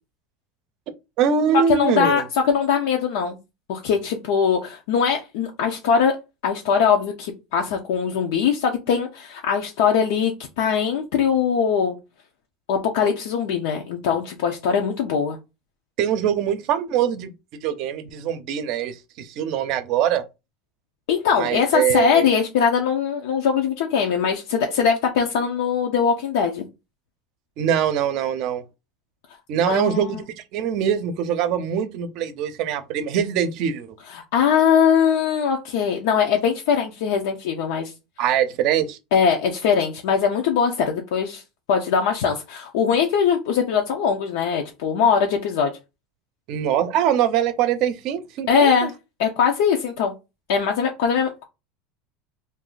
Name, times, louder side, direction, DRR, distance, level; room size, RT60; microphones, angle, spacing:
voice 1, 1.2-2.2 16.0-17.3 17.6-20.2 21.4-22.3 27.6-28.6 29.5-30.2 30.5-34.0 38.2-39.0 46.5-48.9, right 9 dB, 55° right, 0.5 m, -23 dB
voice 2, 1.7-3.4 3.7-6.2 6.4-12.0 12.7-15.4 21.1-26.6 29.6-30.2 34.1-37.9 39.1-41.4 41.7-45.7 48.5-48.9 49.2-50.1 50.5-51.4, left 7 dB, 80° left, 0.6 m, -21 dB
2.6 x 2.4 x 3.8 m
supercardioid pair, 145°, 0 cm